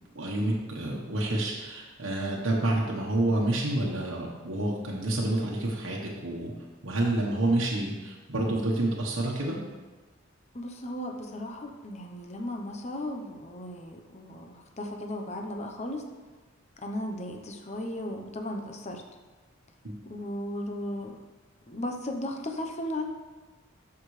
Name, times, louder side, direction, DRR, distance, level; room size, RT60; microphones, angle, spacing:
voice 1, 0.1-6.5 6.8-9.6 19.8-20.0, right 1 dB, 80° right, -3 dB, 1.2 m, -28 dB
voice 2, 10.5-16.0 16.8-19.0 20.1-21.2 21.7-23.1, left 1 dB, 35° left, 3 dB, 0.9 m, -36 dB
13.0 x 5.8 x 3.3 m, 1.3 s
head